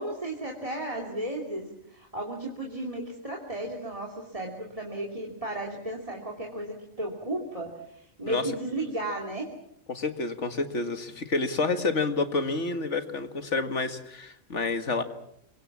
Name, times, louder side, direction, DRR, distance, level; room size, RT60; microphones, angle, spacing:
voice 1, 0.0-9.5, right 1 dB, 25° right, 2 dB, 2.9 m, -34 dB
voice 2, 9.9-15.0, left 3 dB, 70° left, 8 dB, 2.2 m, -29 dB
26.5 x 23.5 x 7.3 m, 0.76 s
omnidirectional pair, 1.3 m